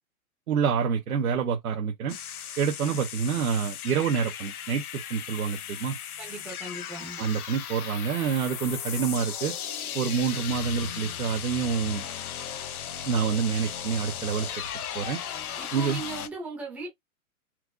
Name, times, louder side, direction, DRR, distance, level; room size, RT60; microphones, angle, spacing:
voice 1, 0.5-2.2 2.6-6.0 7.2-9.5 9.9-12.0 13.0-14.5 14.9-15.2 15.7-16.0, right 7 dB, 80° right, 1.2 m, -27 dB
sound 1, 2.1-16.3, left 9 dB, 85° left, 0.9 m, -36 dB
voice 2, 6.2-7.2 15.6-16.9, right 3 dB, 5° right, 0.4 m, -38 dB
4.5 x 2.5 x 2.3 m
hypercardioid pair, 155°, 43 cm